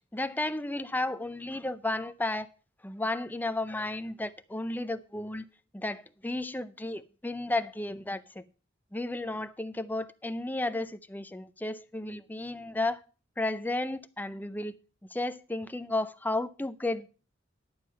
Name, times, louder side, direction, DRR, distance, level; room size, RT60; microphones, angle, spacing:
voice 1, 0.1-2.5 2.8-5.4 5.7-8.4 8.9-13.0 13.4-14.7 15.1-17.1, left 2 dB, 10° left, 0.5 m, -33 dB
11.0 x 7.4 x 5.4 m
head